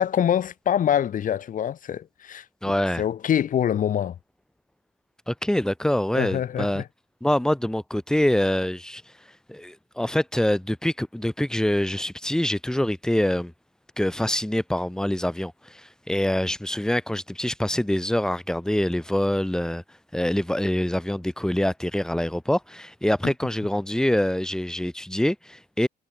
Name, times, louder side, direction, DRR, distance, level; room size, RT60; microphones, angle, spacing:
voice 1, 0.0-2.4 3.0-4.2 6.1-6.8, left 9 dB, 50° left, 4.2 m, -24 dB
voice 2, 2.6-3.0 5.3-6.8 7.2-9.0 9.5-13.5 14.0-19.8 20.1-25.9, left 1 dB, 5° left, 7.8 m, -25 dB
cardioid pair, 110°, 17 cm